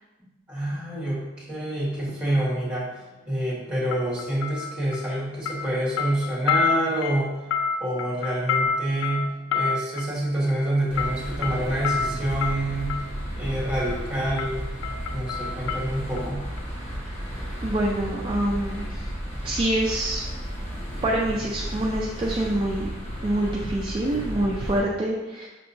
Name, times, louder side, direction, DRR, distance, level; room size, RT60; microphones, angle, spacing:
voice 1, 0.5-2.9 3.2-7.3 7.8-13.0 13.4-14.6 15.1-16.4, right 1 dB, 5° right, -6 dB, 1.4 m, -27 dB
sound 1, 2.0-2.2 3.9-5.2 5.4-13.1 13.9-14.1 14.4-16.3 16.6-16.7, left 5 dB, 80° left, 0.3 m, -29 dB
sound 2, 10.9-24.8, equal, 35° left, 1.2 m, -33 dB
voice 2, 17.6-19.1 19.4-20.3 21.0-22.9 23.2-25.5, right 1 dB, 25° right, -2 dB, 0.3 m, -26 dB
5.8 x 2.8 x 2.6 m, 1.1 s
head